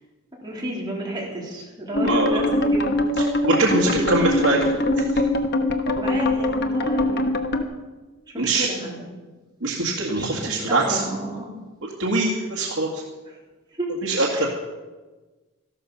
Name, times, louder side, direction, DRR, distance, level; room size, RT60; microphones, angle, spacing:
voice 1, 0.4-2.5 2.7-2.9 6.0-7.4 8.3-9.1 10.1-11.5 13.8-13.9 14.3-14.5, right 1 dB, 20° right, -3 dB, 3.6 m, -32 dB
sound 1, 1.9-7.6, left 1 dB, 50° left, 1.1 m, -22 dB
voice 2, 2.0-2.4 3.4-4.7 5.0-5.1 8.4-8.7 9.6-11.0 12.0-12.9 14.0-14.5, right 2 dB, 70° right, -3 dB, 2.0 m, -22 dB
13.5 x 13.0 x 5.5 m, 1.2 s
head